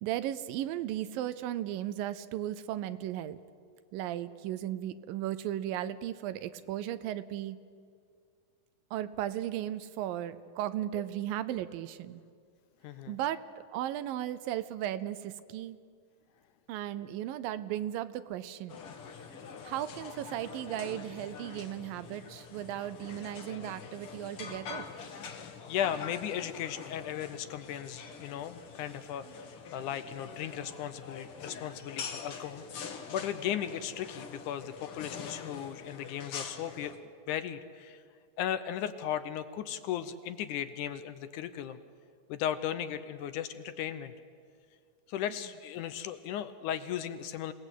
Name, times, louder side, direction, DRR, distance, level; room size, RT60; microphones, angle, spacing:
voice 1, 0.0-3.4 3.9-7.6 8.9-12.2 13.1-13.4 13.7-15.8 16.7-18.8 19.6-24.9, right 12 dB, 80° right, 14 dB, 2.4 m, -36 dB
voice 2, 12.8-13.2 25.3-38.0 38.4-41.8 42.3-44.1 45.1-47.5, left 10 dB, 75° left, 11 dB, 2.0 m, -36 dB
sound 1, 18.7-37.0, left 6 dB, 55° left, 1.8 m, -45 dB
27.0 x 18.0 x 8.2 m, 2.2 s
omnidirectional pair, 4.1 m